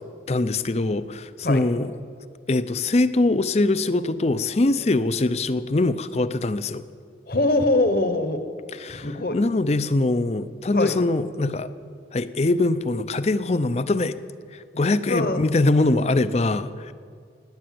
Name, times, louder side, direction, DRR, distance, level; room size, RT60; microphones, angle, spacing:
voice 1, 0.3-1.9 2.5-6.8 8.7-11.7 12.1-14.2 14.5-16.9, left 2 dB, 35° left, 0.5 m, -23 dB
voice 2, 7.3-8.4 8.9-9.4 10.7-11.0 15.1-15.4, left 2 dB, 55° left, 1.2 m, -22 dB
18.0 x 9.8 x 7.7 m
head